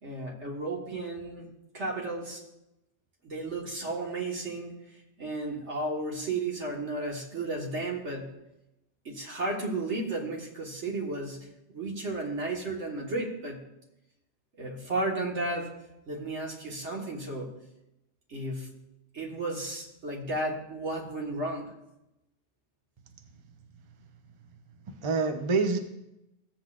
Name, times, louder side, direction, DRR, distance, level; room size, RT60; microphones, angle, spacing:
voice 1, 0.0-2.4 3.2-4.8 5.2-8.3 9.1-13.6 14.6-15.7 16.1-17.5 18.3-18.7 19.1-21.7, right 2 dB, 75° right, 0 dB, 1.8 m, -33 dB
voice 2, 23.1-23.6 23.9-24.0 24.4-24.5 24.9-25.8, right 4 dB, 30° right, 6 dB, 0.6 m, -29 dB
15.0 x 7.9 x 2.5 m, 0.88 s
omnidirectional pair, 1.2 m